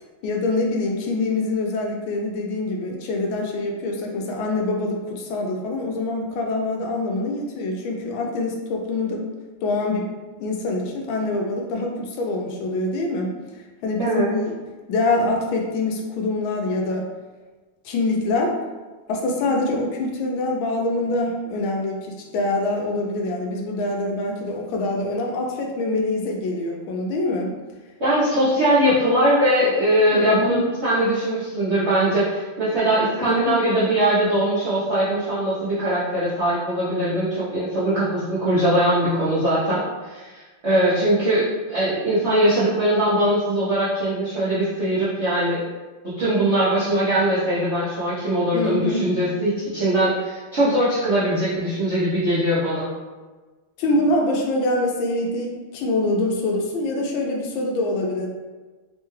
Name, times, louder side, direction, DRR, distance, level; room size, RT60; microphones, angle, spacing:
voice 1, 0.2-9.3 9.6-10.1 10.4-14.5 14.9-17.1 17.8-18.6 19.1-27.5 30.1-30.7 33.3-33.6 48.5-49.1 53.8-58.3, left 2 dB, 75° left, 1 dB, 1.3 m, -25 dB
voice 2, 28.0-45.6 46.0-52.9, right 1 dB, 65° right, -12 dB, 0.6 m, -21 dB
3.6 x 2.2 x 3.1 m, 1.3 s
omnidirectional pair, 2.3 m